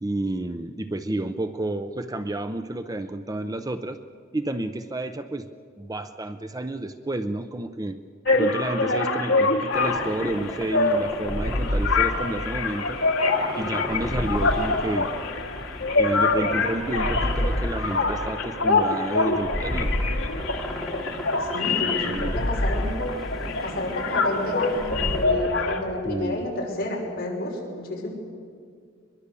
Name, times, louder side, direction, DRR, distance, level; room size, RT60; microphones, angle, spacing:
voice 1, 0.0-4.0 4.3-5.5 5.8-8.0 8.3-13.0 13.6-15.1 16.0-19.9 21.6-22.4 26.0-26.4, right 1 dB, 20° right, 9 dB, 0.6 m, -30 dB
sound 1, 8.2-25.8, left 3 dB, 65° left, 2.0 m, -25 dB
sound 2, 9.7-25.3, equal, ahead, 2.6 m, -31 dB
voice 2, 21.4-23.1 23.6-28.1, left 1 dB, 50° left, -2 dB, 5.7 m, -30 dB
23.0 x 22.0 x 6.9 m, 2.1 s
head